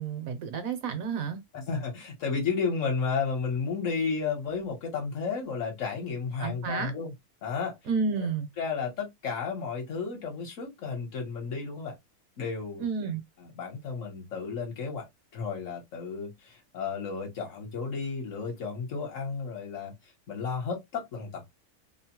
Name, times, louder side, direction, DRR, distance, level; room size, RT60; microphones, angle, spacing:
voice 1, 0.0-1.4 6.4-6.9 7.9-8.5 12.8-13.2, right 5 dB, 70° right, 1.0 m, -30 dB
voice 2, 1.5-7.1 7.4-7.7 8.2-8.3 8.6-12.0 12.4-12.9 13.4-15.1 15.3-21.5, left 5 dB, 60° left, 1.2 m, -33 dB
2.8 x 2.0 x 2.9 m
omnidirectional pair, 1.6 m